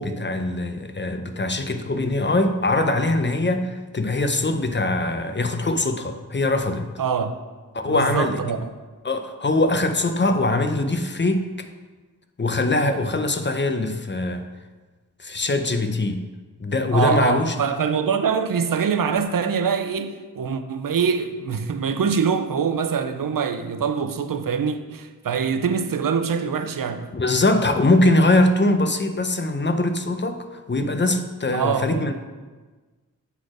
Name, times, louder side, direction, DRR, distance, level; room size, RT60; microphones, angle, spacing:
voice 1, 0.0-6.9 7.7-8.4 9.0-11.7 12.4-14.4 15.2-16.3 16.6-17.5 27.1-32.1, left 2 dB, 35° left, 0.6 m, -22 dB
voice 2, 7.0-7.3 7.9-8.7 16.9-27.1 31.5-32.1, right 6 dB, 85° right, 0.6 m, -24 dB
8.1 x 4.2 x 4.8 m
wide cardioid pair, 85°, 32 cm